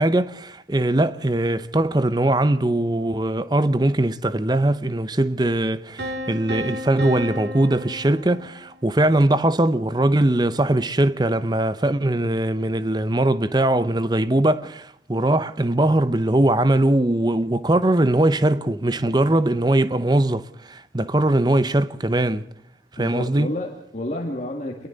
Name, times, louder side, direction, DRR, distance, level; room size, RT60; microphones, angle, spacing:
voice 1, 0.0-22.5 22.9-23.5, right 1 dB, 25° right, 0.7 m, -21 dB
Piano, 6.0-8.9, equal, 75° right, 2.6 m, -33 dB
voice 2, 23.0-24.9, left 1 dB, 40° left, 2.2 m, -30 dB
28.5 x 22.5 x 4.0 m
head